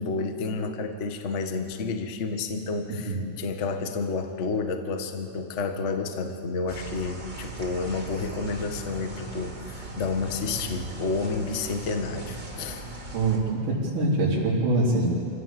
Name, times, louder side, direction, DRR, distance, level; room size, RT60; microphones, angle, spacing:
voice 1, 0.0-12.8, left 4 dB, 40° left, 6 dB, 1.0 m, -30 dB
sound 1, 6.7-13.4, right 2 dB, 15° right, 2.4 m, -39 dB
voice 2, 13.1-15.1, right 2 dB, 85° right, -5 dB, 5.2 m, -24 dB
28.0 x 16.0 x 7.6 m, 2.5 s
omnidirectional pair, 3.5 m